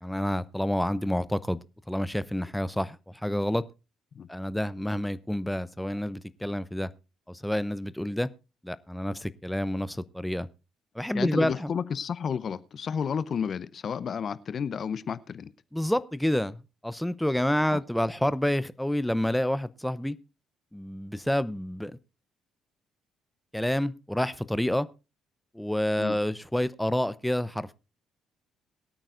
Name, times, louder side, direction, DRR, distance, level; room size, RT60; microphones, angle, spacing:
voice 1, 0.0-1.6 1.9-3.6 4.3-6.9 7.3-8.3 8.6-10.5 10.9-11.7 15.7-20.2 20.7-22.0 23.5-24.9 25.5-27.7, left 1 dB, 5° left, 0.7 m, -28 dB
voice 2, 11.1-15.5 17.7-17.8 26.0-26.2, left 7 dB, 55° left, 0.8 m, -31 dB
22.0 x 9.0 x 2.6 m
supercardioid pair, 60°, 0 cm